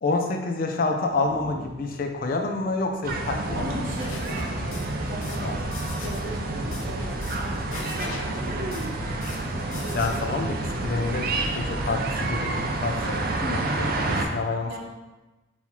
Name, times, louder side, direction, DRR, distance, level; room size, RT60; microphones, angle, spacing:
voice 1, 0.0-3.7 5.4-5.5 9.9-11.3 11.5-14.8, left 3 dB, 45° left, 4 dB, 0.4 m, -28 dB
sound 1, 1.1-14.0, equal, 30° right, 0.8 m, -45 dB
sound 2, 3.0-14.3, right 2 dB, 45° right, 0.4 m, -29 dB
voice 2, 3.5-9.0 14.7-14.8, equal, 60° right, -2 dB, 0.9 m, -39 dB
sound 3, 3.9-10.2, left 3 dB, 85° left, 0.6 m, -41 dB
5.5 x 2.8 x 3.0 m, 1.1 s
head